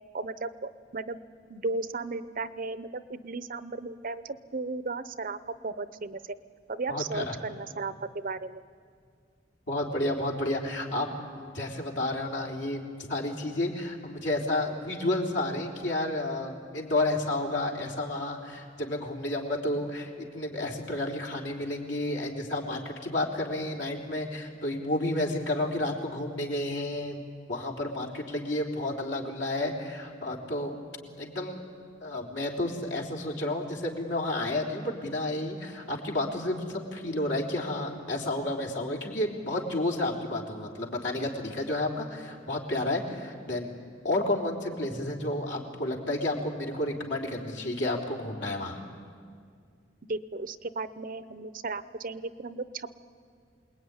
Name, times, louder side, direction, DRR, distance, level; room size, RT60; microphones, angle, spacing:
voice 1, 0.1-1.2 1.5-6.4 6.7-8.6 50.1-52.9, right 3 dB, 45° right, 13 dB, 0.7 m, -35 dB
voice 2, 6.9-7.4 9.7-11.1 11.3-12.8 13.1-27.2 27.5-30.7 31.2-31.6 32.0-43.8 44.0-48.8, left 1 dB, 65° left, 0 dB, 3.7 m, -31 dB
28.0 x 21.0 x 9.6 m, 2.2 s
head